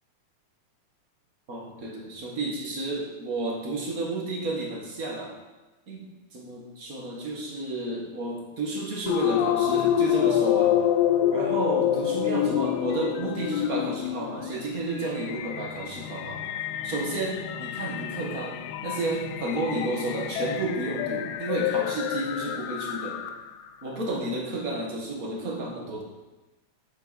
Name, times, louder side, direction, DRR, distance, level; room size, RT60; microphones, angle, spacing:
voice 1, 1.5-5.3 5.9-6.0 6.3-10.8 11.3-16.4 16.8-23.2 23.8-26.0, right 2 dB, 35° right, -1 dB, 1.6 m, -31 dB
sound 1, 9.1-23.6, left 11 dB, 80° left, 1.7 m, -27 dB
11.5 x 8.6 x 4.2 m, 1.1 s
omnidirectional pair, 3.7 m